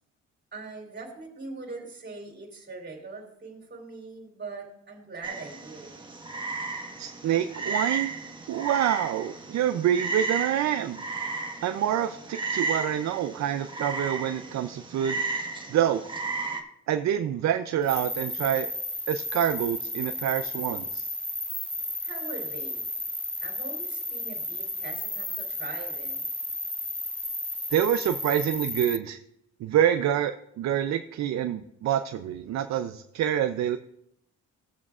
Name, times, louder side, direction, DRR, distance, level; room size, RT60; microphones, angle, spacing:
voice 1, 0.5-5.9 22.0-22.8 23.4-26.3, right 3 dB, 35° right, 0 dB, 3.3 m, -41 dB
Frog, 5.2-16.6, right 3 dB, 15° right, 1.3 m, -34 dB
voice 2, 7.0-8.1 8.5-11.0 11.6-15.2 15.7-16.0 16.9-18.7 19.1-21.1 27.7-29.2 29.6-33.8, right 10 dB, 65° right, 9 dB, 0.6 m, -26 dB
sound 1, 17.9-29.0, left 1 dB, 5° left, 0.5 m, -33 dB
17.0 x 7.2 x 2.4 m, 0.77 s
cardioid pair, 90°, 30 cm